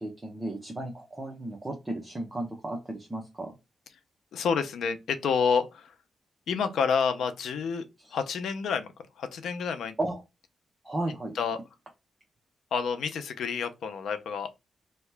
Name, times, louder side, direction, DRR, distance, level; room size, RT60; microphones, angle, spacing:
voice 1, 0.0-3.5 8.0-8.2 10.0-10.2 10.8-11.4, right 1 dB, 15° right, 0.7 m, -34 dB
voice 2, 4.3-5.9 6.5-7.9 8.1-8.9 9.2-10.0 11.4-11.6 12.7-14.5, left 6 dB, 90° left, 0.5 m, -28 dB
2.8 x 2.3 x 3.2 m
wide cardioid pair, 115°, 0 cm